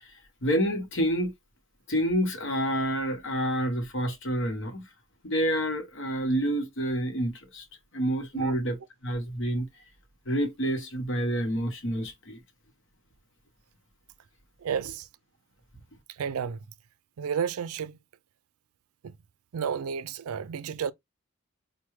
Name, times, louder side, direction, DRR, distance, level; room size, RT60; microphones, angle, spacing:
voice 1, 0.0-1.3 1.9-4.9 5.2-7.7 7.9-8.8 9.0-9.7 10.3-12.4, equal, 55° left, 1.0 m, -28 dB
voice 2, 14.6-15.1 16.1-16.6 17.2-18.0 19.0-19.2 19.5-20.9, right 7 dB, 80° right, 0.4 m, -31 dB
4.6 x 2.2 x 3.0 m
head